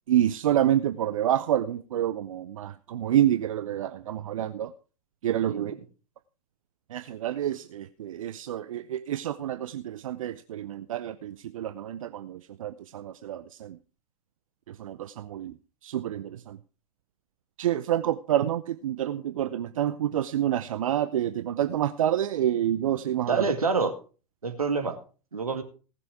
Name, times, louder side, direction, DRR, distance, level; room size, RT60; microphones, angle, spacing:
voice 1, 0.1-4.7 5.2-5.7 6.9-13.8 14.8-15.5 15.8-16.6 17.6-23.5, right 11 dB, 65° right, 12 dB, 0.7 m, -28 dB
voice 2, 5.5-5.8 23.3-23.9 24.4-25.0 25.3-25.6, right 4 dB, 85° right, 6 dB, 2.1 m, -27 dB
18.5 x 6.9 x 4.8 m, 0.37 s
figure-of-eight pair, 90°, 18 cm